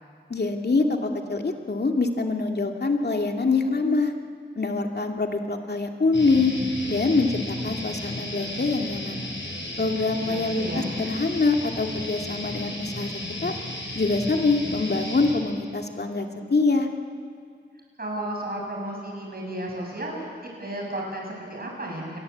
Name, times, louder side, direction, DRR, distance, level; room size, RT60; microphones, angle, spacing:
voice 1, 0.3-4.1 4.6-6.5 6.9-7.3 7.6-9.2 9.8-13.1 13.4-13.5 13.9-16.9, left 3 dB, 60° left, 3 dB, 2.4 m, -24 dB
sound 1, 6.1-15.3, left 1 dB, 85° left, 7.5 m, -34 dB
voice 2, 10.2-10.9 18.0-22.2, right 1 dB, 55° right, -1 dB, 7.4 m, -33 dB
28.5 x 22.0 x 8.6 m, 2.1 s
wide cardioid pair, 65°, 19 cm